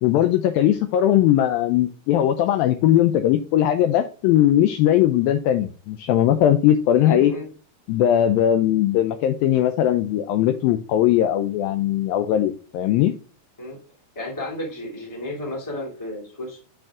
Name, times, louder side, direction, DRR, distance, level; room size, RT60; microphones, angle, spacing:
voice 1, 0.0-7.3 7.9-13.1, left 11 dB, 85° left, 8 dB, 2.1 m, -19 dB
voice 2, 6.9-7.4 13.6-13.8 14.1-16.6, left 1 dB, 10° left, -1 dB, 1.4 m, -32 dB
7.4 x 5.2 x 3.5 m, 0.37 s
omnidirectional pair, 4.7 m